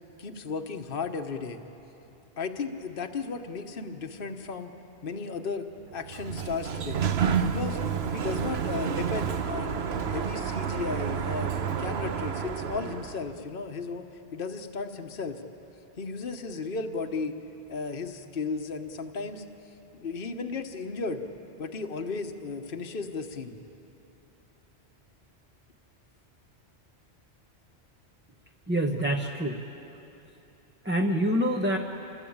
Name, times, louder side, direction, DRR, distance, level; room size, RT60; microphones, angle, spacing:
voice 1, 0.2-1.6 2.4-4.7 5.0-5.7 5.9-7.0 7.4-7.8 8.1-9.8 10.1-11.5 11.8-14.0 14.3-15.4 16.0-17.3 17.7-19.4 19.9-21.2 21.6-23.6, left 4 dB, 55° left, 6 dB, 1.3 m, -34 dB
Sliding door, 5.9-13.3, right 7 dB, 70° right, 1.1 m, -30 dB
voice 2, 28.7-29.6 30.8-31.8, equal, 10° right, 1 dB, 1.0 m, -26 dB
27.0 x 21.5 x 8.7 m, 2.9 s
omnidirectional pair, 1.1 m